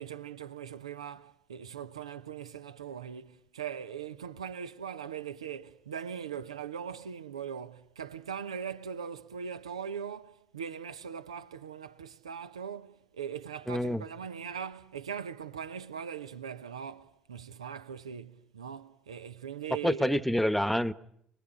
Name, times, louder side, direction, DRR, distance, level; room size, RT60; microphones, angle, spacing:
voice 1, 0.0-20.3, right 7 dB, 80° right, 1.0 m, -40 dB
voice 2, 13.7-14.0 19.8-20.9, equal, 5° left, 1.1 m, -27 dB
29.0 x 21.5 x 9.1 m
figure-of-eight pair, 50°, 3 cm